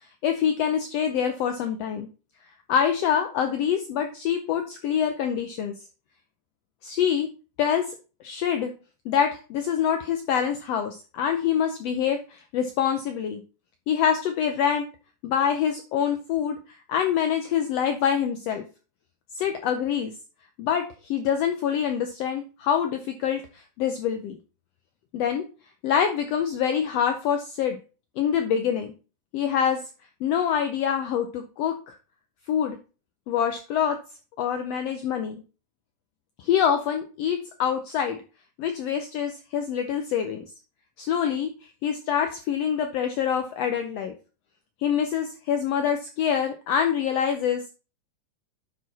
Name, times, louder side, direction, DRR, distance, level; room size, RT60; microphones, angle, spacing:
voice 1, 0.2-2.1 2.7-5.7 6.8-7.3 7.6-7.9 8.2-8.7 9.0-13.4 13.9-14.9 15.2-16.6 16.9-18.6 19.4-20.1 20.6-24.4 25.1-25.5 25.8-27.8 28.2-28.9 29.3-29.8 30.2-32.0 32.5-32.8 33.3-34.0 34.4-35.4 36.4-38.2 38.6-40.4 41.0-41.5 41.8-44.1 44.8-47.7, left 8 dB, 80° left, 7 dB, 1.4 m, -25 dB
10.0 x 4.7 x 4.1 m, 0.34 s
omnidirectional pair, 3.7 m